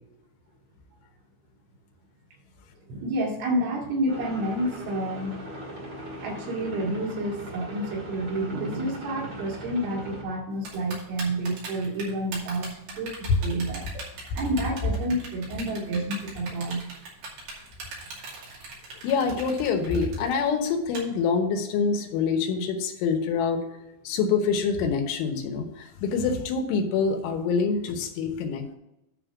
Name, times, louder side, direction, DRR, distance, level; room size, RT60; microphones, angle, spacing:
voice 1, 2.9-5.7 6.2-13.9 14.3-16.8, right 1 dB, 85° right, -3 dB, 4.8 m, -29 dB
sound 1, 4.1-10.2, right 1 dB, 35° right, 1.8 m, -39 dB
Typing, 10.6-21.0, right 3 dB, 55° right, 3.8 m, -39 dB
voice 2, 19.0-23.6 24.1-28.8, left 5 dB, 85° left, 5 dB, 3.5 m, -26 dB
10.5 x 3.7 x 7.1 m, 0.88 s
omnidirectional pair, 5.4 m